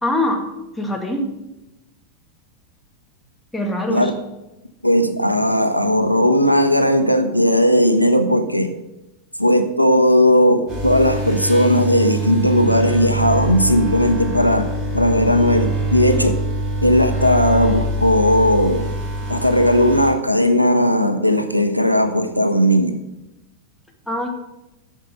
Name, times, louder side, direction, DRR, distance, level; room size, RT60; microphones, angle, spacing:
voice 1, 0.0-0.4 0.8-1.3 3.5-4.1 24.1-24.3, left 1 dB, 5° left, 0 dB, 2.0 m, -22 dB
voice 2, 4.8-8.7 9.4-14.7 14.9-16.4 16.8-18.9 19.3-23.0, equal, 90° right, 9 dB, 0.7 m, -16 dB
sound 1, 10.7-20.1, right 1 dB, 25° right, 4.9 m, -24 dB
8.9 x 6.7 x 7.7 m, 0.97 s
figure-of-eight pair, 90°, 0 cm